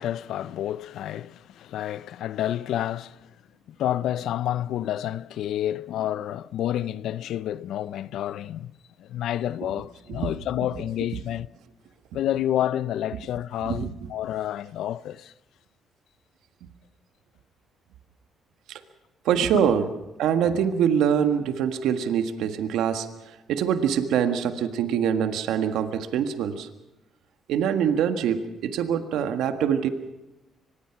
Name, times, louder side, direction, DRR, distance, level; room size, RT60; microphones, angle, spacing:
voice 1, 0.0-3.3 3.7-8.7 9.0-11.5 12.1-15.3 19.5-19.7, left 12 dB, 80° left, 0.7 m, -29 dB
voice 2, 19.2-19.9 20.2-26.7 27.5-29.9, right 8 dB, 85° right, 1.6 m, -24 dB
24.5 x 20.5 x 6.0 m
cardioid pair, 90°, 0 cm